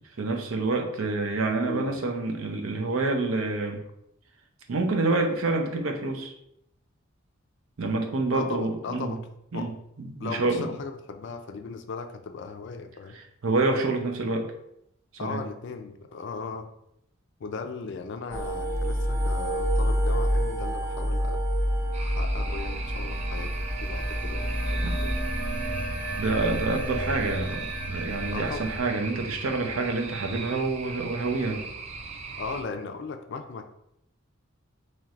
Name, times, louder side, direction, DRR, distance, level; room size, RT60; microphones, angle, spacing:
voice 1, 0.2-3.8 4.7-6.3 7.8-9.2 9.5-10.7 13.4-14.5 15.1-15.4 24.8-24.9 26.2-31.6, right 3 dB, 80° right, 4 dB, 0.6 m, -27 dB
voice 2, 1.5-2.0 8.3-9.2 9.5-9.7 10.2-13.2 15.2-16.7 17.4-21.4 22.0-25.2 28.3-28.7 32.4-33.7, left 4 dB, 60° left, 7 dB, 0.4 m, -37 dB
sound 1, 18.3-28.8, equal, 10° right, 0.9 m, -28 dB
sound 2, 21.9-32.6, right 4 dB, 30° right, 0.3 m, -39 dB
4.5 x 3.1 x 2.4 m, 0.78 s
head